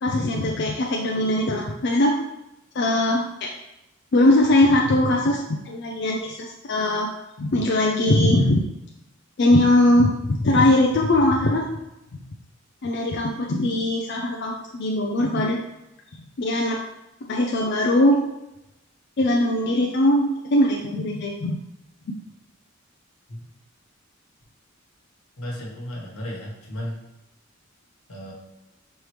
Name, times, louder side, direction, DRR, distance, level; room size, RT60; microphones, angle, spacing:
voice 1, 0.0-2.2 2.7-3.5 4.1-7.1 7.4-8.6 9.4-11.7 12.8-15.6 16.4-16.8 17.3-18.2 19.2-21.5, left 1 dB, 50° left, -1 dB, 0.4 m, -20 dB
voice 2, 25.4-27.0 28.1-28.3, equal, 85° left, -3 dB, 1.3 m, -34 dB
5.3 x 3.2 x 3.1 m, 0.91 s
head